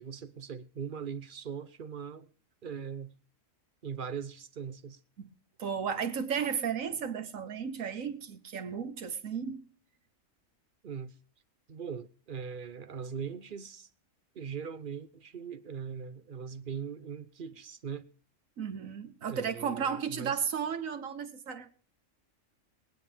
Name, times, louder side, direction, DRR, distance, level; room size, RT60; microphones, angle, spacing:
voice 1, 0.0-2.3 2.6-3.1 3.8-5.0 10.8-11.1 11.7-13.9 14.3-18.1 19.3-20.4, right 6 dB, 45° right, 0.9 m, -40 dB
voice 2, 5.6-9.7 18.6-21.7, right 7 dB, 90° right, 1.5 m, -34 dB
22.0 x 8.9 x 3.5 m
omnidirectional pair, 1.3 m